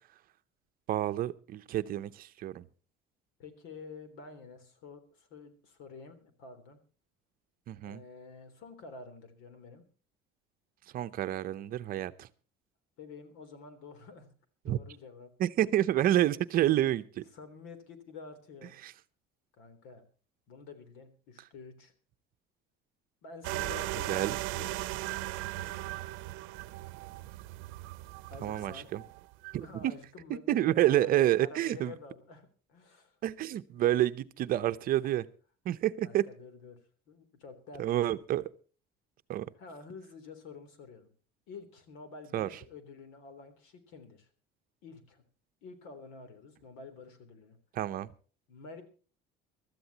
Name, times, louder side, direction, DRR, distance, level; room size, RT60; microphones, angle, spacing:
voice 1, 0.9-2.6 7.7-8.0 10.9-12.3 14.7-14.8 15.4-17.2 18.8-18.9 24.1-24.4 28.4-29.0 29.5-29.9 30.3-31.9 33.2-35.2 35.6-36.2 37.8-38.4 39.3-39.5 42.3-42.5 47.7-48.1, right 13 dB, 45° right, 12 dB, 0.8 m, -29 dB
voice 2, 3.4-6.8 7.8-9.8 13.0-14.3 14.6-15.3 17.3-18.7 19.6-20.0 20.5-21.9 23.2-25.9 28.2-28.9 29.5-33.1 35.0-35.1 36.0-36.8 37.1-38.0 39.6-41.1 41.5-44.3 44.8-45.2 45.6-47.6 48.5-48.8, left 4 dB, 80° left, 10 dB, 3.4 m, -49 dB
sound 1, 23.4-29.6, right 19 dB, 85° right, 0.7 m, -38 dB
24.0 x 13.5 x 2.9 m, 0.37 s
cardioid pair, 150°, 20 cm